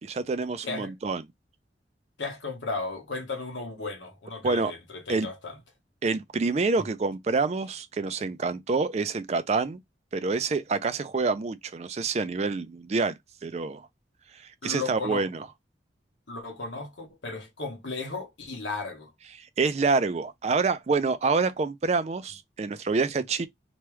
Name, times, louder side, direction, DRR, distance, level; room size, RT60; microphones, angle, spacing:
voice 1, 0.0-1.2 4.4-4.7 5.1-5.3 6.0-9.8 10.1-13.8 14.4-15.5 19.4-23.5, right 4 dB, 35° right, 0.4 m, -27 dB
voice 2, 2.2-5.6 14.6-15.3 16.3-19.1, left 3 dB, 85° left, 1.2 m, -35 dB
3.0 x 2.3 x 3.1 m
head